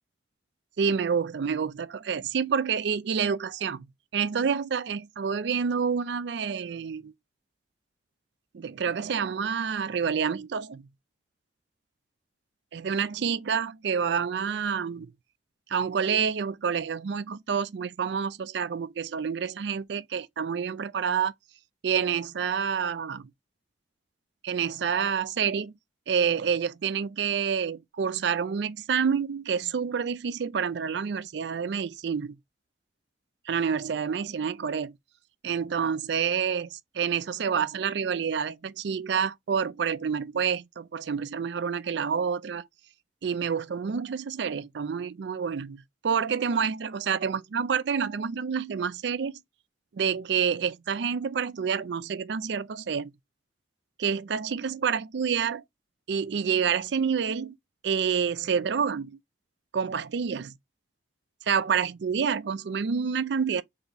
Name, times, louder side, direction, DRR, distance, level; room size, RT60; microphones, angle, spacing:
voice 1, 0.8-3.9 4.1-7.1 8.5-10.8 12.7-15.1 15.7-21.3 21.8-23.3 24.4-25.7 26.1-32.3 33.5-34.9 35.4-42.7 43.2-49.4 49.9-53.1 54.0-55.6 56.1-57.5 57.8-59.2 59.7-60.4 61.5-63.6, right 6 dB, 60° right, 0.4 m, -28 dB
4.0 x 2.8 x 3.3 m
head